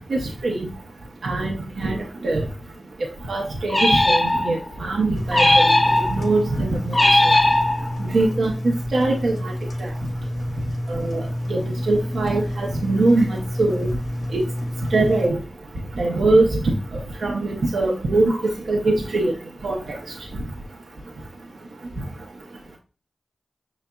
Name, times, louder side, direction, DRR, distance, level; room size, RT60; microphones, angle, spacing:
voice 1, 1.2-2.0 2.2-2.4 3.3-5.7 6.1-7.3 8.1-8.5 8.9-9.5 9.8-9.9 10.9-11.2 11.5-11.6 11.9-13.9 14.3-14.4 14.9-15.4 16.0-16.7 17.2-18.4 18.7-19.3 19.6-20.0, right 2 dB, 80° right, 0 dB, 0.7 m, -22 dB
sound 1, 3.7-4.7 5.3-6.4 6.9-8.1, left 1 dB, 30° left, 0.5 m, -18 dB
Engine, 5.2-15.3, equal, 75° left, 1.0 m, -29 dB
5.7 x 4.0 x 2.2 m, 0.34 s
cardioid pair, 45°, 0 cm